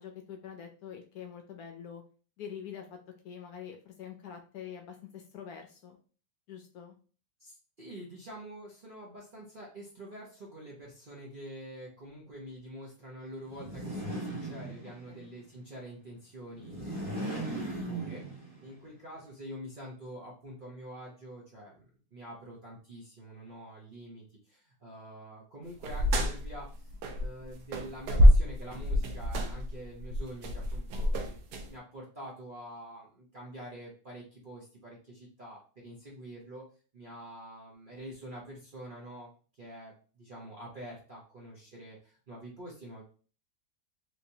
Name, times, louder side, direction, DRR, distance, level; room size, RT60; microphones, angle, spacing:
voice 1, 0.0-2.0 2.4-3.0 3.2-6.0 6.5-7.0 15.1-15.3, left 8 dB, 70° left, 4 dB, 1.0 m, -45 dB
voice 2, 7.4-21.8 22.1-26.9 27.2-31.4 31.7-36.6 36.9-39.3 39.6-43.0, equal, 45° right, -4 dB, 0.7 m, -46 dB
sound 1, 13.5-15.2 16.5-18.7, right 1 dB, 25° right, 1.3 m, -38 dB
sound 2, 25.8-27.4 27.7-31.7, equal, 75° right, 1.1 m, -25 dB
3.2 x 3.0 x 2.7 m, 0.38 s
omnidirectional pair, 1.9 m